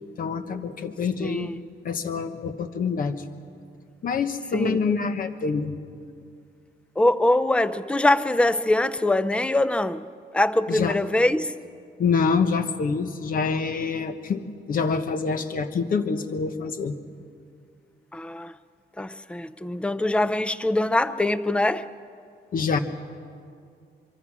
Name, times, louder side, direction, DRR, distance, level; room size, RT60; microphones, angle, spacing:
voice 1, 0.2-1.5 1.8-3.2 4.0-5.8 10.7-11.0 12.0-16.9 22.5-22.8, left 5 dB, 50° left, 1.2 m, -26 dB
voice 2, 1.2-1.6 4.5-4.8 7.0-10.1 10.3-11.5 18.1-18.5 19.0-21.9, left 1 dB, 5° left, 0.5 m, -23 dB
24.5 x 24.0 x 6.2 m
wide cardioid pair, 175°, 18 cm